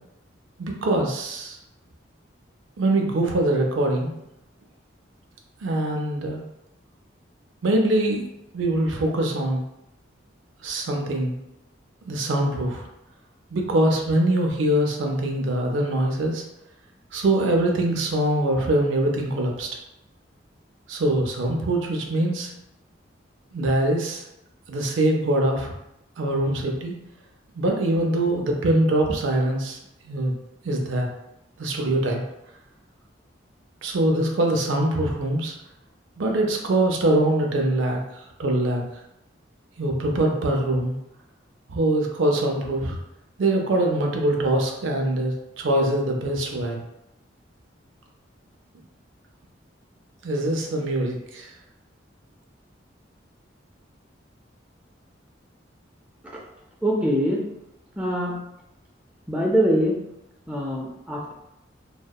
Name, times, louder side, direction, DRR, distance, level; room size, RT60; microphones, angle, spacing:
voice 1, 0.6-1.6 2.8-4.1 5.6-6.4 7.6-8.2 8.5-9.6 10.6-11.3 12.0-12.8 13.5-16.4 17.1-19.7 20.9-22.5 23.5-24.2 24.7-25.7 26.2-27.0 27.5-29.8 30.0-30.4 30.6-31.1 31.6-32.2 33.8-35.5 36.2-38.0 38.4-38.8 39.8-41.0 41.7-43.0 43.4-46.8 50.2-51.5, right 1 dB, 80° right, 1 dB, 0.5 m, -23 dB
voice 2, 56.8-57.4 58.0-58.4 59.3-60.0 60.5-61.3, equal, 5° right, -3 dB, 0.4 m, -23 dB
2.7 x 2.1 x 2.3 m, 0.84 s
head